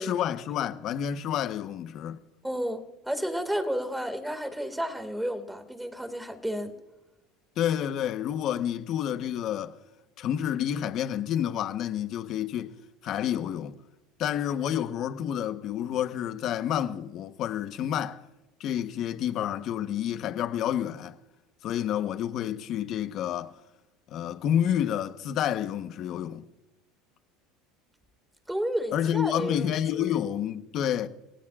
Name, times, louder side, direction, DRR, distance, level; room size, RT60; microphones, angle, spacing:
voice 1, 0.0-2.2 7.6-9.8 10.2-12.7 13.0-13.7 14.2-18.2 18.6-21.2 21.6-23.5 24.1-26.4 28.9-31.1, left 10 dB, 50° left, 1.1 m, -29 dB
voice 2, 2.4-6.7 28.5-30.1, equal, 5° right, 2.1 m, -32 dB
28.5 x 17.5 x 2.5 m
supercardioid pair, 130°, 0 cm